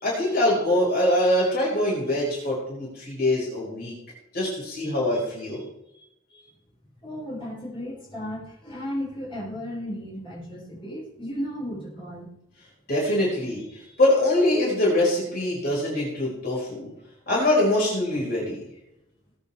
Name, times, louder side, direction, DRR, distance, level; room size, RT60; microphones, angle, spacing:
voice 1, 0.0-3.9 4.3-5.7 12.9-16.9 17.3-18.6, left 1 dB, 45° left, -5 dB, 5.3 m, -23 dB
voice 2, 7.0-12.3, equal, 25° left, -7 dB, 6.1 m, -34 dB
20.0 x 10.0 x 3.6 m, 0.84 s
head